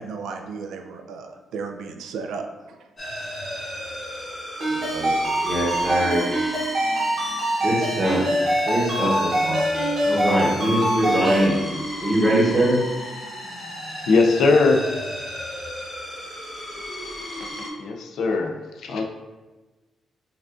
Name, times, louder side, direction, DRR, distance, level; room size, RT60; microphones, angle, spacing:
voice 1, 0.0-2.8, right 4 dB, 85° right, 5 dB, 0.3 m, -34 dB
sound 1, 3.0-17.7, left 1 dB, 30° left, 1.0 m, -34 dB
Ringtone, 4.6-11.5, equal, 50° right, 0.9 m, -24 dB
voice 2, 4.7-5.2 5.4-6.3 7.6-8.3 8.7-9.7 10.0-11.7 12.0-12.8, right 1 dB, 20° right, -6 dB, 0.8 m, -22 dB
voice 3, 14.1-14.8 17.8-18.5 18.8-19.0, left 3 dB, 70° left, 2 dB, 0.4 m, -19 dB
4.6 x 2.4 x 2.4 m, 1.2 s
cardioid pair, 145°, 0 cm